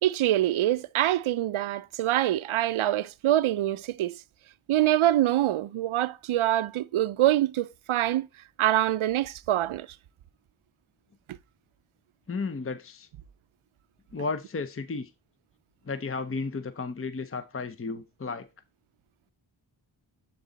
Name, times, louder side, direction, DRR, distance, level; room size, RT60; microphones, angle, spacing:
voice 1, 0.0-4.2 4.7-8.3 8.6-9.9, right 13 dB, 80° right, 0.5 m, -25 dB
voice 2, 12.3-13.1 14.1-15.1 15.8-18.5, left 4 dB, 30° left, 0.7 m, -33 dB
11.0 x 4.0 x 3.9 m
cardioid pair, 45°, 48 cm